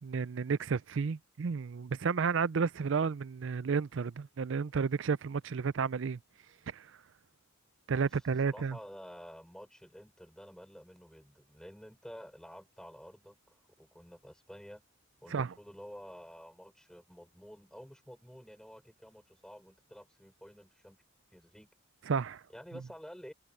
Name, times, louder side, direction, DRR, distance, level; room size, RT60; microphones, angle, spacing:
voice 1, 0.0-6.2 6.7-6.9 7.9-8.8 15.3-15.5 22.1-22.4, right 5 dB, 65° right, 0.4 m, -32 dB
voice 2, 8.5-14.8 15.2-21.0 21.3-21.7 22.5-23.3, equal, 5° left, 5.9 m, -51 dB
head